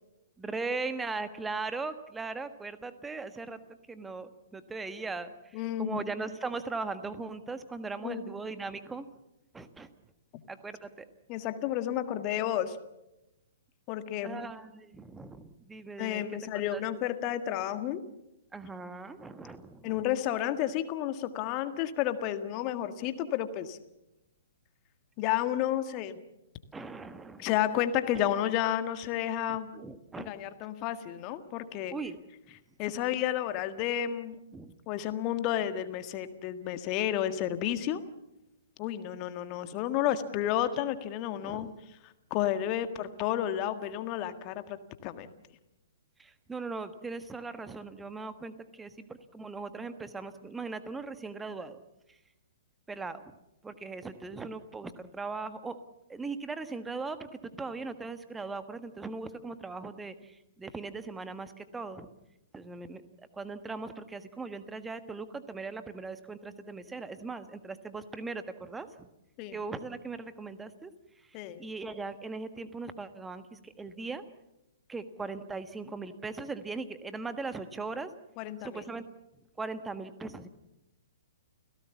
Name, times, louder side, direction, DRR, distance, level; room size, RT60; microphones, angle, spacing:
voice 1, 0.4-3.6 3.9-9.1 9.5-9.9 10.5-11.0 14.2-16.8 18.5-20.0 26.7-27.5 28.1-28.4 29.5-30.3 31.9-32.2 34.5-34.7 41.4-41.7 46.2-51.8 52.9-53.2 53.6-55.8 56.1-62.1 62.5-63.0 63.3-69.1 69.5-70.9 71.3-74.2 74.9-78.1 78.6-79.1 79.6-80.5, right 3 dB, 10° right, 11 dB, 1.4 m, -39 dB
voice 2, 5.5-6.0 8.0-8.2 11.3-12.8 13.9-14.4 16.0-18.0 19.8-23.8 25.2-26.2 27.4-29.7 30.2-31.9 32.8-34.4 34.9-38.0 38.8-41.7 42.3-44.8 45.0-45.3 69.4-69.6 71.3-71.6 78.4-78.8, left 11 dB, 30° left, 10 dB, 1.7 m, -31 dB
30.0 x 17.0 x 7.2 m, 0.91 s
figure-of-eight pair, 115°, 0 cm